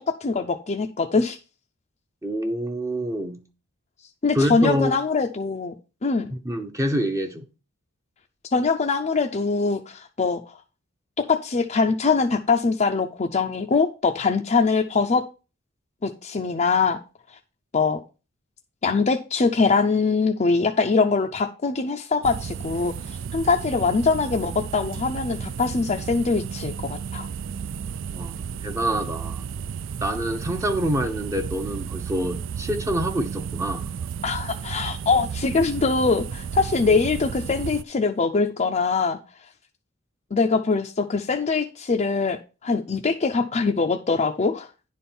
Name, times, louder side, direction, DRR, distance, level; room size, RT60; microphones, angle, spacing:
voice 1, 0.0-1.4 4.2-5.7 6.0-6.3 8.5-10.4 11.2-15.2 16.0-17.0 17.7-18.0 18.8-27.3 34.2-39.2 40.3-44.7, left 4 dB, 35° left, 0.5 m, -23 dB
voice 2, 2.2-3.4 4.3-4.9 6.3-7.4 28.1-29.5 30.0-33.9, equal, 15° right, 0.7 m, -26 dB
sound 1, 22.2-37.8, right 7 dB, 60° right, 0.4 m, -33 dB
10.0 x 4.3 x 5.4 m
head